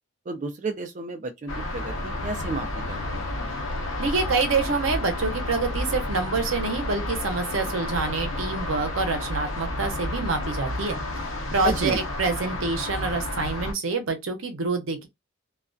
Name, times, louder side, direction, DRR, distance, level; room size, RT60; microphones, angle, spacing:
voice 1, 0.3-3.3 11.6-12.0, right 3 dB, 40° right, 0.4 m, -32 dB
Binaural ambience outdoor alley patio next to highway, 1.5-13.7, left 1 dB, 75° left, 0.7 m, -31 dB
voice 2, 4.0-11.0 11.5-15.1, right 4 dB, 85° right, 0.7 m, -26 dB
2.3 x 2.2 x 2.5 m
head